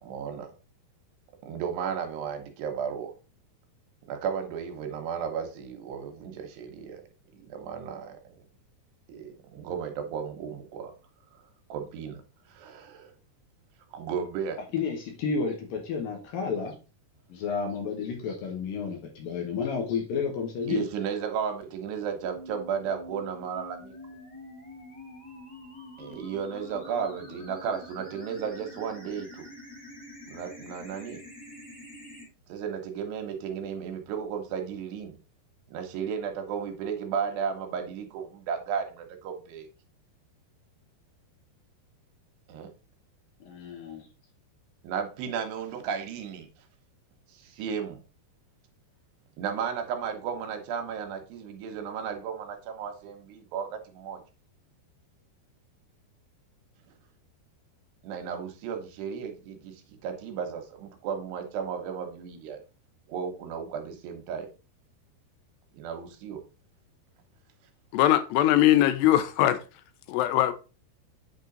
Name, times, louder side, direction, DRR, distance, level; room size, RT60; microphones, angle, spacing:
voice 1, 0.0-0.5 1.4-3.1 4.1-7.0 7.3-8.2 9.1-10.9 11.7-12.2 12.5-13.1 13.9-14.6 20.7-24.0 26.0-29.5 30.3-31.2 32.5-35.2 35.7-39.7 42.5-42.7 44.8-46.5 47.3-48.0 49.4-54.2 58.0-62.6 63.1-64.5 65.7-66.4, right 7 dB, 80° right, 3.2 m, -34 dB
voice 2, 14.7-16.7 17.3-20.9 43.4-44.1, left 5 dB, 65° left, 2.6 m, -31 dB
sound 1, 22.2-32.2, left 1 dB, 5° left, 0.8 m, -46 dB
voice 3, 67.9-69.6 70.1-70.5, left 13 dB, 90° left, 2.8 m, -21 dB
8.2 x 3.8 x 3.8 m
omnidirectional pair, 4.8 m